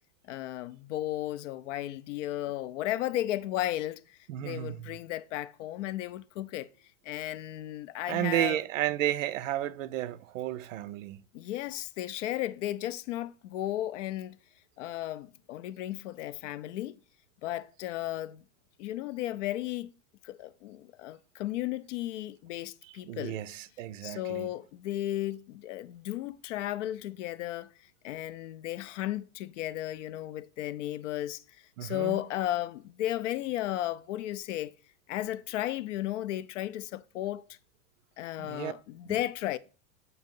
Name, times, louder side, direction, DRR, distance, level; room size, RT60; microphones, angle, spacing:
voice 1, 0.3-6.7 7.0-8.6 11.3-14.4 14.8-17.0 17.4-18.4 18.8-19.9 20.2-23.4 24.0-27.7 28.0-31.4 31.8-34.7 35.1-37.4 38.2-39.6, left 14 dB, 65° left, 0.5 m, -34 dB
voice 2, 4.3-4.9 8.1-11.2 23.1-24.5 31.8-32.2 38.4-38.7 39.0-39.2, right 13 dB, 70° right, 0.5 m, -32 dB
7.7 x 2.8 x 5.2 m
supercardioid pair, 155°, 40 cm